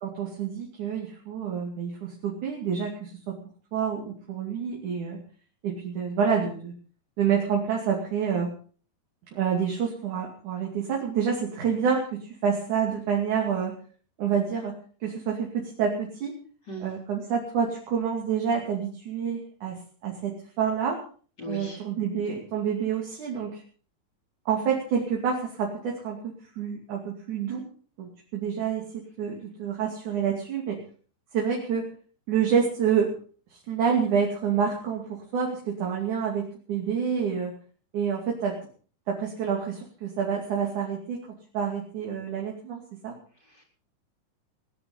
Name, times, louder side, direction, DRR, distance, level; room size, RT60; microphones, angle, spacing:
voice 1, 0.0-3.4 3.7-5.2 5.6-6.7 7.2-8.5 9.3-13.7 14.2-14.7 15.0-16.3 16.8-19.8 20.0-21.0 21.5-23.6 24.5-27.6 28.0-30.8 31.3-31.9 32.3-33.1 33.5-37.5 37.9-38.5 39.1-43.1, right 7 dB, 60° right, -1 dB, 4.0 m, -28 dB
voice 2, 21.4-21.8 43.4-43.6, equal, 30° left, 0 dB, 4.9 m, -38 dB
20.0 x 10.0 x 5.5 m, 0.43 s
omnidirectional pair, 4.0 m